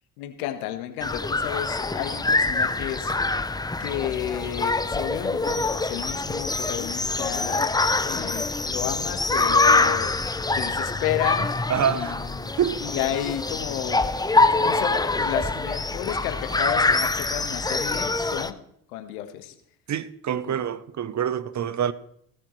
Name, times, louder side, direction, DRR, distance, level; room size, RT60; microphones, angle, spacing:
voice 1, 0.2-3.1 3.8-7.7 8.0-12.1 12.4-12.5 12.8-18.6 18.9-19.5 20.4-20.6, left 12 dB, 85° left, 1.6 m, -32 dB
sound 1, 1.0-18.5, left 3 dB, 10° left, 0.7 m, -25 dB
voice 2, 11.7-12.1 12.6-12.8 19.9-21.9, right 8 dB, 40° right, 1.0 m, -26 dB
18.0 x 13.5 x 3.3 m
hypercardioid pair, 65°, 42 cm